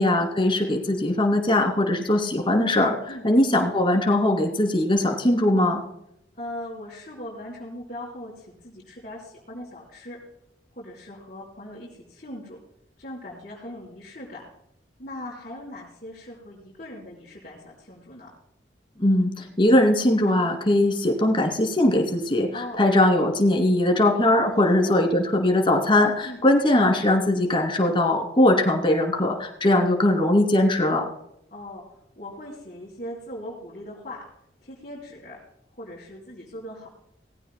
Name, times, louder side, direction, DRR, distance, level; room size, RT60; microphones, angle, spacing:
voice 1, 0.0-2.9 3.2-5.8 19.0-22.5 22.8-31.0, left 1 dB, 25° left, 2 dB, 2.7 m, -20 dB
voice 2, 6.4-10.2 10.7-12.6 13.0-14.5 15.0-18.3 22.5-22.8 24.6-24.9 26.2-26.5 31.5-31.8 32.2-34.2 34.6-35.4 35.7-36.9, left 1 dB, 40° left, -6 dB, 4.4 m, -39 dB
19.0 x 16.5 x 2.2 m, 0.79 s
head